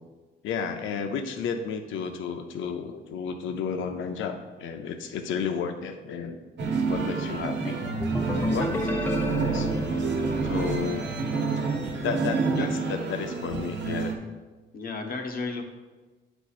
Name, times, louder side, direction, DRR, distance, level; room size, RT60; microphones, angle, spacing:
voice 1, 0.4-6.4 6.8-7.8 8.5-9.7 10.4-11.1 12.0-14.1, left 6 dB, 80° left, 6 dB, 0.6 m, -32 dB
sound 1, 6.6-14.1, right 4 dB, 65° right, 1.0 m, -28 dB
sound 2, 8.0-11.7, left 1 dB, 10° left, 0.6 m, -32 dB
voice 2, 10.4-10.9 12.6-12.7 14.7-15.6, left 3 dB, 45° left, 3 dB, 1.0 m, -34 dB
8.9 x 4.3 x 2.4 m, 1.2 s
cardioid pair, 90°, 20 cm